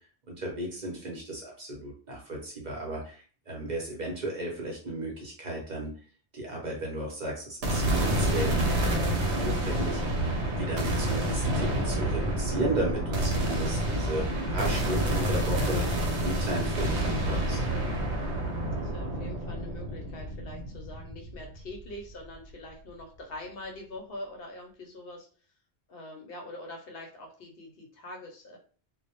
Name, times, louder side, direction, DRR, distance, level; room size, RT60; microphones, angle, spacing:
voice 1, 0.3-3.2 3.5-5.9 6.3-10.0 10.5-14.2 14.5-15.8 16.2-17.6, right 1 dB, 50° right, -2 dB, 0.7 m, -34 dB
sound 1, 7.6-21.9, right 1 dB, 90° right, 0.9 m, -28 dB
voice 2, 18.8-25.3 25.9-28.6, left 1 dB, 65° left, 1 dB, 0.7 m, -44 dB
2.1 x 2.0 x 2.8 m, 0.41 s
omnidirectional pair, 1.1 m